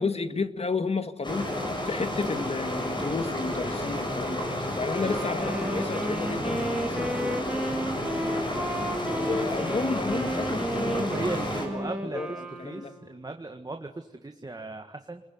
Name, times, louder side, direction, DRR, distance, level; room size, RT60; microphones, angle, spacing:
voice 1, 0.0-7.4 9.2-12.9, left 4 dB, 55° left, 10 dB, 1.8 m, -32 dB
sound 1, 1.2-11.7, left 1 dB, 35° left, 7.6 m, -31 dB
Wind instrument woodwind instrument, 4.8-13.2, right 1 dB, 5° right, 4.2 m, -33 dB
voice 2, 10.9-15.2, right 2 dB, 30° right, 5 dB, 1.8 m, -37 dB
29.5 x 21.0 x 9.5 m, 0.99 s
wide cardioid pair, 85°, 13 cm